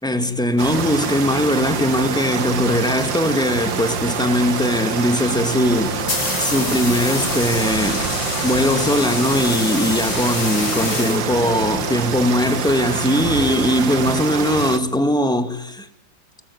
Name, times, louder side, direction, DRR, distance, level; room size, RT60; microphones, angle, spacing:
voice 1, 0.0-6.0 6.4-8.0 8.4-15.9, left 1 dB, ahead, 2.1 m, -20 dB
sound 1, 0.6-14.8, right 6 dB, 65° right, 2.3 m, -26 dB
Organ, 1.9-12.7, equal, 85° right, 7.8 m, -34 dB
sound 2, 5.8-11.8, left 3 dB, 75° left, 4.7 m, -27 dB
25.5 x 20.5 x 9.8 m
omnidirectional pair, 2.1 m